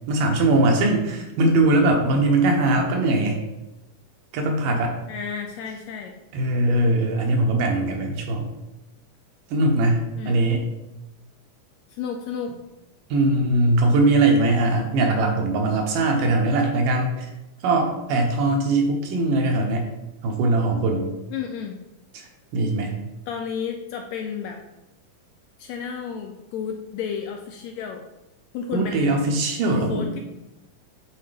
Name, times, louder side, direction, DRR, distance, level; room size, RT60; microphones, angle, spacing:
voice 1, 0.1-3.4 4.3-5.0 6.3-8.5 9.5-10.7 13.1-17.3 17.6-19.9 20.2-21.1 22.5-23.0 28.7-30.1, right 2 dB, 80° right, 2 dB, 2.8 m, -21 dB
voice 2, 5.1-6.1 10.1-10.5 11.9-12.6 21.3-21.8 22.8-22.9 23.3-24.6 25.6-28.0 28.5-29.0 29.7-30.2, left 7 dB, 85° left, 3 dB, 1.5 m, -32 dB
8.5 x 4.1 x 5.1 m, 0.97 s
omnidirectional pair, 3.8 m